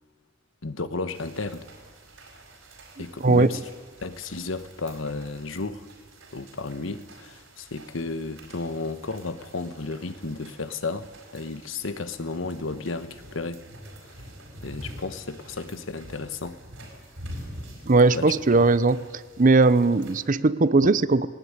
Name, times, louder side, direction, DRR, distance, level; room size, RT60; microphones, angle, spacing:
voice 1, 0.6-1.7 3.0-3.6 4.0-5.9 6.3-13.6 14.6-16.6 18.1-18.3, left 3 dB, 90° left, 1.3 m, -33 dB
sound 1, 1.1-20.2, right 1 dB, 75° right, 5.1 m, -46 dB
voice 2, 17.9-19.0 19.4-21.3, right 3 dB, 40° right, 0.7 m, -19 dB
19.5 x 18.5 x 9.7 m
head